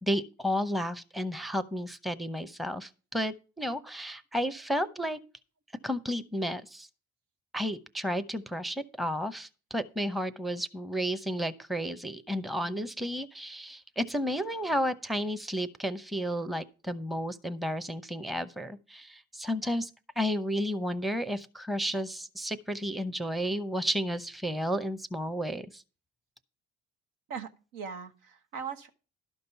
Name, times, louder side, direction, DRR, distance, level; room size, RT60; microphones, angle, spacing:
voice 1, 0.0-5.2 5.8-6.9 7.5-19.9 20.2-25.8, equal, ahead, 0.8 m, -32 dB
voice 2, 27.3-28.9, right 6 dB, 75° right, 1.1 m, -40 dB
12.0 x 5.3 x 5.8 m
hypercardioid pair, 55°, 32 cm